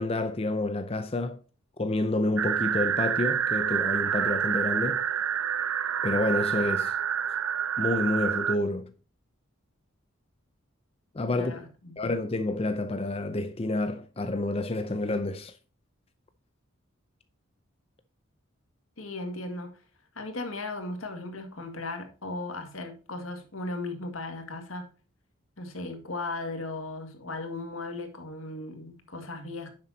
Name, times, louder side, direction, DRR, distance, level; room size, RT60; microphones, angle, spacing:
voice 1, 0.0-1.4 1.8-5.0 6.0-6.9 7.8-8.9 11.1-11.5 12.0-15.5, left 2 dB, 30° left, 0.6 m, -29 dB
sound 1, 2.4-8.6, right 8 dB, 85° right, 0.7 m, -27 dB
voice 2, 11.3-12.0 19.0-19.8 20.2-24.9 25.6-29.7, left 2 dB, 75° left, 2.0 m, -37 dB
10.0 x 7.4 x 2.8 m
head